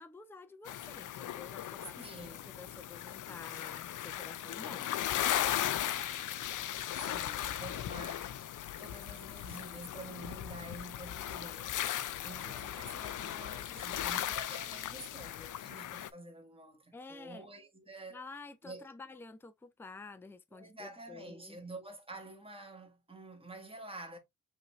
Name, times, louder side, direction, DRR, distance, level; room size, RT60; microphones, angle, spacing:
voice 1, 0.0-4.9 12.4-12.6 16.9-17.5 18.1-21.6, left 3 dB, 5° left, 0.4 m, -50 dB
sound 1, 0.7-16.1, left 11 dB, 80° left, 0.5 m, -37 dB
voice 2, 2.0-2.5 6.9-8.4 8.8-11.8 12.2-18.2 18.6-18.9 20.5-24.2, right 2 dB, 20° right, 1.4 m, -48 dB
Meow, 5.3-6.1, left 7 dB, 55° left, 0.8 m, -48 dB
5.4 x 2.7 x 3.1 m
wide cardioid pair, 100°, 30 cm